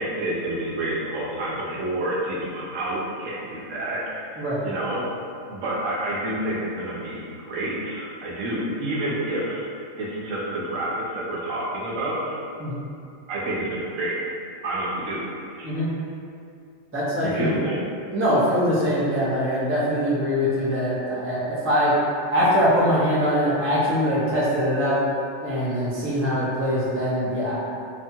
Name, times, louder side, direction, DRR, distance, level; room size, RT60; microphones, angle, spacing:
voice 1, 0.0-5.1 5.5-9.7 10.0-12.4 13.3-14.2 14.6-15.2 15.6-15.7 17.2-17.8, right 1 dB, 85° right, -5 dB, 1.0 m, -29 dB
voice 2, 16.9-17.6 18.1-21.9 22.3-25.0 25.4-27.5, equal, 15° right, -10 dB, 0.4 m, -22 dB
2.7 x 2.2 x 2.6 m, 2.4 s
omnidirectional pair, 1.3 m